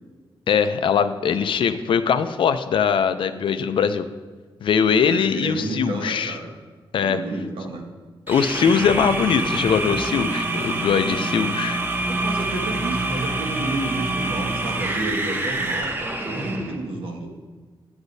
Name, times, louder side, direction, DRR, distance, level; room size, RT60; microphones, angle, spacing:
voice 1, 0.5-4.1 4.6-6.4 6.9-7.2 8.3-11.8, left 7 dB, 65° left, 11 dB, 0.4 m, -21 dB
voice 2, 5.0-6.5 7.0-7.8 11.2-11.3 12.1-17.3, right 2 dB, 70° right, 1 dB, 1.2 m, -30 dB
sound 1, 8.3-16.8, right 2 dB, 20° right, 0.7 m, -26 dB
9.5 x 8.0 x 2.6 m, 1.4 s
wide cardioid pair, 140°, 9 cm